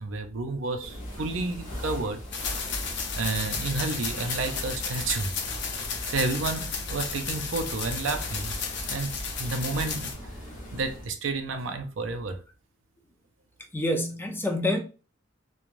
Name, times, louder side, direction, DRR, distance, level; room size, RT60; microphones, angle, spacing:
voice 1, 0.0-2.2 3.2-5.3 6.1-8.5 8.9-10.1 10.7-12.4, right 3 dB, 85° right, 0.5 m, -31 dB
sound 1, 0.8-11.1, equal, 45° left, 1.1 m, -40 dB
sound 2, 2.3-10.1, left 5 dB, 65° left, 0.6 m, -33 dB
voice 2, 13.7-14.8, left 1 dB, 10° left, 0.4 m, -27 dB
3.1 x 2.2 x 2.5 m
head